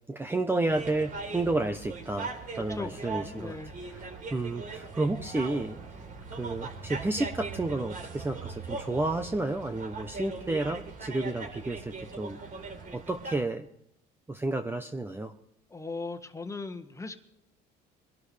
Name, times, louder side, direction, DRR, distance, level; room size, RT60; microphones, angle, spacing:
voice 1, 0.1-2.3 2.6-3.6 3.9-5.8 6.3-12.4 12.9-13.7 14.3-15.3, right 2 dB, 10° right, 7 dB, 0.9 m, -31 dB
sound 1, 0.7-13.4, right 4 dB, 40° right, 3.7 m, -40 dB
voice 2, 2.5-3.7 15.7-17.2, left 3 dB, 15° left, 7 dB, 1.6 m, -38 dB
23.5 x 12.0 x 3.4 m, 0.77 s
supercardioid pair, 100°, 20 cm